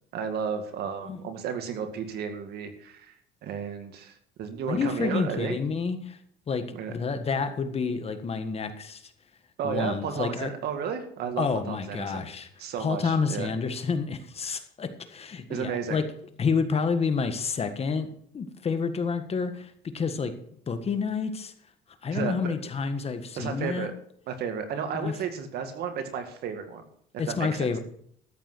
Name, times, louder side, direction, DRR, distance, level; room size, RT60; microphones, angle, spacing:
voice 1, 0.1-3.1 3.4-5.6 6.7-6.9 9.6-12.3 12.6-13.5 15.5-16.0 22.1-22.5 23.4-23.9 24.3-26.8 27.3-27.8, right 7 dB, 70° right, 7 dB, 2.1 m, -33 dB
voice 2, 4.7-6.2 6.5-9.1 9.6-10.5 11.4-16.1 16.4-18.1 18.3-20.3 20.7-21.5 22.0-23.9 24.9-25.2 27.2-27.8, left 5 dB, 35° left, 9 dB, 1.6 m, -29 dB
13.5 x 8.1 x 6.2 m, 0.66 s
cardioid pair, 110°, 17 cm